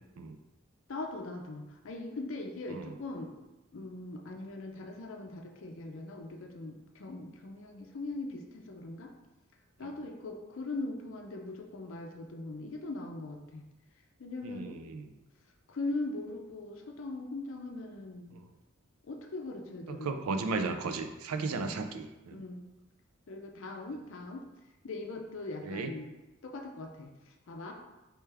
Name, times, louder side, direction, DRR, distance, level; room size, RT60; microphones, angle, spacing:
voice 1, 0.9-3.3 3.7-9.1 9.8-13.6 14.2-14.8 15.7-18.4 19.0-20.2 21.5-21.8 22.3-22.6 23.3-24.5 24.8-26.1 26.4-27.1 27.5-27.7, left 2 dB, 65° left, 3 dB, 0.5 m, -40 dB
voice 2, 14.4-15.1 19.9-22.4 25.6-25.9, right 4 dB, 90° right, 8 dB, 0.4 m, -35 dB
4.5 x 3.4 x 3.3 m, 1.0 s
head